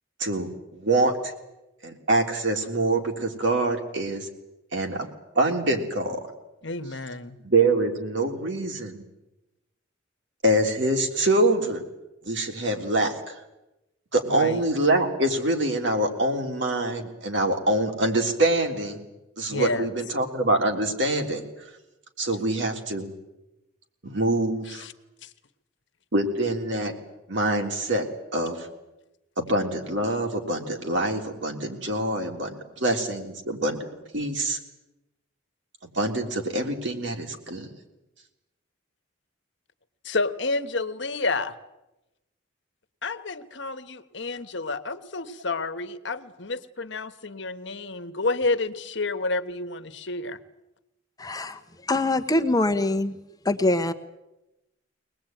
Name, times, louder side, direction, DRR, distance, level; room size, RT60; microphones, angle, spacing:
voice 1, 0.2-1.1 1.8-4.3 4.7-5.1 5.3-6.2 7.4-9.0 10.4-11.8 12.2-13.1 14.1-19.0 19.4-21.4 22.2-23.1 24.0-24.8 26.1-26.9 27.3-28.0 28.3-28.7 29.4-33.8 34.1-34.6 35.9-37.7, right 2 dB, 65° right, 3 dB, 3.5 m, -25 dB
voice 2, 6.6-7.4 14.3-14.6 19.5-19.9 24.7-24.9 25.2-25.3 40.0-41.5 43.0-50.4, left 3 dB, 60° left, 10 dB, 1.3 m, -30 dB
voice 3, 51.2-53.2 53.4-53.9, left 2 dB, 20° left, 7 dB, 1.0 m, -24 dB
23.5 x 19.5 x 9.2 m, 0.97 s
head